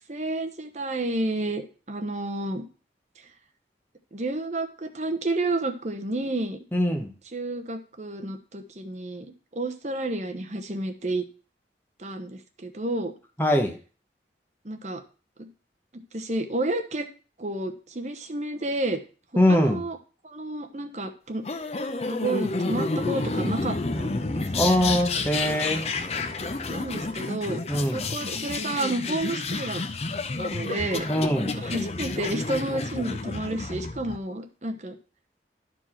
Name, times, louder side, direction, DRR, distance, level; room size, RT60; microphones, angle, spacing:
voice 1, 0.1-2.6 4.1-6.6 7.3-9.3 9.5-11.2 12.0-13.1 14.6-15.0 15.4-15.5 15.9-17.1 17.4-19.0 19.5-20.0 20.2-21.5 22.1-24.7 26.7-27.6 27.9-29.8 30.4-31.1 31.4-35.0, right 2 dB, 40° right, 7 dB, 0.9 m, -30 dB
voice 2, 6.7-7.1 13.4-13.7 19.4-19.8 24.5-25.8 27.7-28.0 31.1-31.5, equal, 10° left, 3 dB, 1.2 m, -22 dB
sound 1, 21.4-34.2, left 3 dB, 35° left, 0.6 m, -30 dB
11.5 x 4.5 x 4.4 m, 0.37 s
head